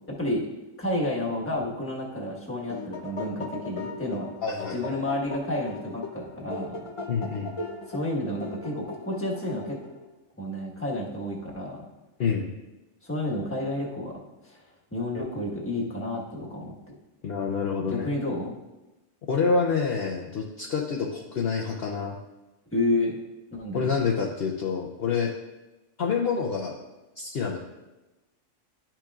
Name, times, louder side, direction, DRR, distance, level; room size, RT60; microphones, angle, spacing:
voice 1, 0.1-0.4 0.8-4.3 4.7-6.9 7.9-9.8 10.4-11.8 13.0-14.6 14.9-16.9 17.9-18.6 22.7-23.2 23.5-23.9, left 1 dB, 10° left, -4 dB, 1.3 m, -30 dB
sound 1, 2.5-10.1, left 3 dB, 40° left, 0.5 m, -38 dB
voice 2, 4.4-5.0 7.1-7.6 12.2-12.5 17.2-18.1 19.3-22.2 23.7-25.3 26.0-26.7 27.2-27.6, left 5 dB, 55° left, -1 dB, 0.8 m, -27 dB
11.5 x 5.9 x 2.4 m, 1.0 s
omnidirectional pair, 1.4 m